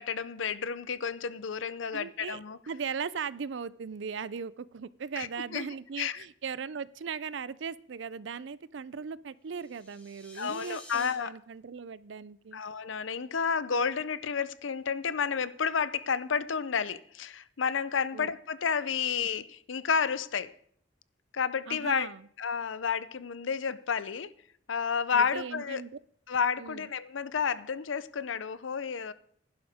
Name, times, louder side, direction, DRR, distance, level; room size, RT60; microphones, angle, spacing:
voice 1, 0.0-2.6 5.2-5.7 6.0-6.2 10.4-11.3 12.5-20.5 21.3-22.1 22.4-24.3 24.7-25.8 26.3-29.1, left 6 dB, 85° left, 0.6 m, -31 dB
voice 2, 1.9-12.6 18.1-18.3 21.7-22.3 25.1-25.9 26.6-26.9, right 6 dB, 70° right, 0.5 m, -38 dB
sound 1, 9.5-11.1, left 1 dB, 10° left, 3.5 m, -50 dB
15.5 x 11.0 x 3.6 m
head